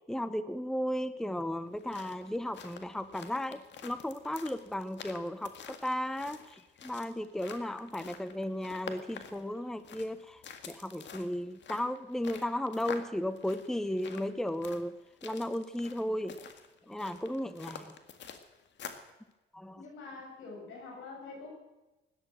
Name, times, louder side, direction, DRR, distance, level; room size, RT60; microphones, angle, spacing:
voice 1, 0.1-15.0 15.2-16.4 16.9-17.9 19.5-19.8, left 1 dB, ahead, 13 dB, 0.8 m, -35 dB
sound 1, 1.7-19.1, left 7 dB, 65° left, 1.9 m, -48 dB
voice 2, 19.8-21.5, left 3 dB, 85° left, 0 dB, 7.1 m, -45 dB
17.5 x 11.5 x 6.2 m, 1.1 s
cardioid pair, 90°, 20 cm